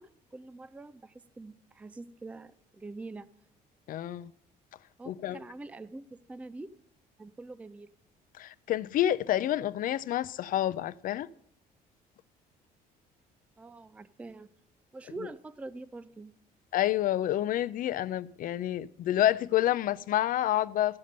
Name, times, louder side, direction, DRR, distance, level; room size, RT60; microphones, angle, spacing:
voice 1, 0.0-3.3 5.0-6.7 7.2-7.9 13.6-14.5 14.9-16.3, right 2 dB, 10° right, 0.4 m, -45 dB
voice 2, 3.9-4.3 5.1-5.4 8.4-11.3 16.7-21.0, left 12 dB, 55° left, 0.4 m, -28 dB
14.0 x 5.1 x 6.5 m
cardioid pair, 110°, 17 cm